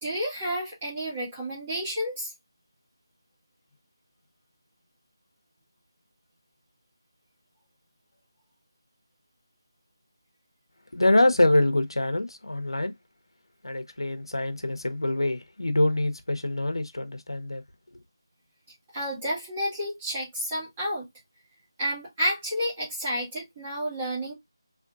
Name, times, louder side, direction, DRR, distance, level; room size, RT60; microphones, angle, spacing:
voice 1, 0.0-2.3 18.9-21.1 21.8-24.3, equal, 15° right, 1.9 m, -30 dB
voice 2, 10.9-12.9 13.6-17.6, left 1 dB, 85° left, 1.0 m, -25 dB
3.5 x 3.3 x 2.5 m
figure-of-eight pair, 175°, 2 cm